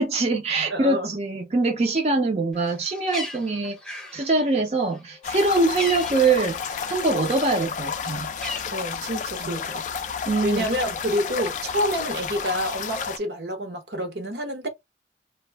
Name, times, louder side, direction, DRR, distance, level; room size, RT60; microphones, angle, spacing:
voice 1, 0.0-3.8 4.1-8.3 9.4-9.6 10.3-10.7, right 3 dB, 35° right, 0.5 m, -23 dB
voice 2, 0.7-1.2 8.7-10.0 10.4-14.7, equal, 70° right, 0.8 m, -28 dB
Bird, 2.5-7.1 7.5-9.4, left 1 dB, 5° left, 0.6 m, -38 dB
sound 1, 5.2-13.2, left 6 dB, 45° left, 0.3 m, -31 dB
2.5 x 2.2 x 3.3 m
head